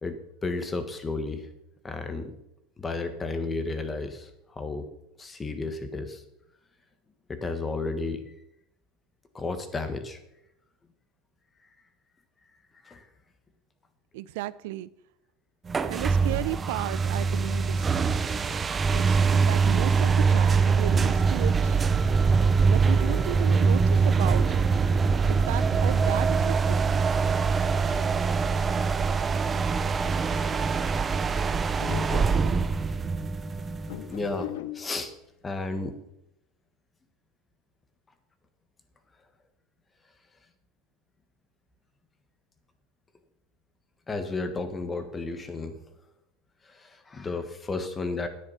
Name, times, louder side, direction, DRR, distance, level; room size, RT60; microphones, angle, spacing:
voice 1, 0.0-1.5 1.8-2.3 2.8-4.3 4.6-4.9 5.2-6.2 7.3-8.2 9.3-10.2 12.8-13.0 34.1-35.1 35.4-35.9 44.1-45.8 47.1-48.3, left 3 dB, 15° left, 9 dB, 1.4 m, -32 dB
voice 2, 14.1-14.9 15.9-17.8 18.9-21.8 22.7-24.4 25.3-27.1, right 16 dB, 80° right, 17 dB, 0.5 m, -34 dB
sound 1, 15.7-34.2, right 5 dB, 20° right, 0.6 m, -23 dB
sound 2, 31.8-32.6 33.9-34.9, left 13 dB, 85° left, 0.6 m, -38 dB
10.0 x 10.0 x 5.6 m, 0.83 s
supercardioid pair, 150°, 0 cm